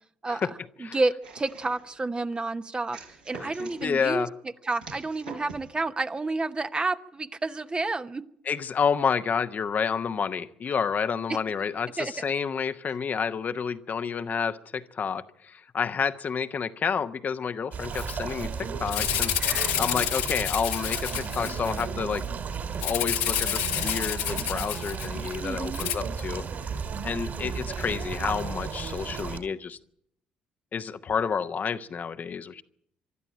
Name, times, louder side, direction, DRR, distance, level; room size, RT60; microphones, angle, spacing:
voice 1, 0.8-3.0 3.3-4.3 4.6-8.2 12.0-12.1 19.4-19.8 25.4-25.8, right 3 dB, 25° right, 10 dB, 0.9 m, -30 dB
sound 1, 1.2-2.0 2.9-3.9 4.8-5.7, right 3 dB, 85° right, 4.5 m, -44 dB
voice 2, 3.4-4.3 8.4-19.3 19.8-22.2 22.8-26.4 27.0-29.8 30.7-32.6, left 6 dB, 40° left, 10 dB, 0.9 m, -29 dB
sound 2, 17.7-29.4, right 6 dB, 50° right, 3.1 m, -34 dB
Rattle (instrument), 17.9-18.1 18.4-18.5 18.9-21.8 22.8-25.3 25.7-25.9, left 11 dB, 70° left, 1.5 m, -29 dB
24.5 x 12.5 x 8.9 m, 0.71 s
figure-of-eight pair, 50°, 4 cm